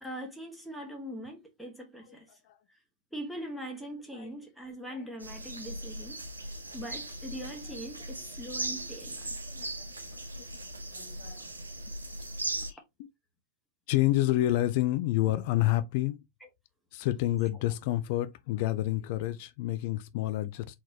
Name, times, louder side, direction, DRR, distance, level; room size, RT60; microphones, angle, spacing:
voice 1, 0.0-2.3 3.1-6.2 6.7-9.4 16.4-16.5, right 1 dB, ahead, 1.6 m, -41 dB
sound 1, 5.2-12.7, right 2 dB, 80° right, 0.8 m, -38 dB
voice 2, 10.9-11.4 12.7-13.1 13.9-16.2 16.9-20.8, left 15 dB, 50° left, 0.4 m, -29 dB
4.1 x 4.0 x 2.8 m
figure-of-eight pair, 90°, 0 cm